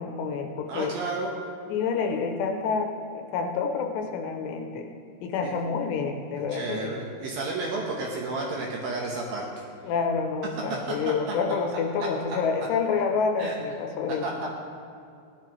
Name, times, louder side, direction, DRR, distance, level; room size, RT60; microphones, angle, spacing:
voice 1, 0.0-0.9 1.7-4.9 5.2-6.9 9.8-14.3, left 5 dB, 80° left, 4 dB, 2.7 m, -28 dB
voice 2, 0.7-1.3 5.4-5.5 6.5-9.6 11.7-11.8 13.4-13.5 14.1-14.5, right 3 dB, 70° right, -2 dB, 2.3 m, -32 dB
15.5 x 10.5 x 3.0 m, 2.5 s
omnidirectional pair, 5.2 m